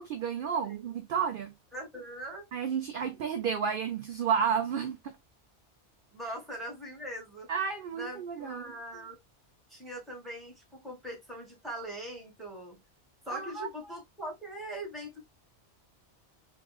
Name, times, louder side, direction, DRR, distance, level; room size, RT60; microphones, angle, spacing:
voice 1, 0.1-1.5 2.5-5.2 7.5-8.7 13.3-13.7, right 7 dB, 60° right, 0.6 m, -31 dB
voice 2, 1.7-2.5 6.1-7.5 7.9-9.1 9.7-12.8 13.2-15.2, right 1 dB, ahead, 1.5 m, -41 dB
3.7 x 2.5 x 2.3 m
omnidirectional pair, 1.2 m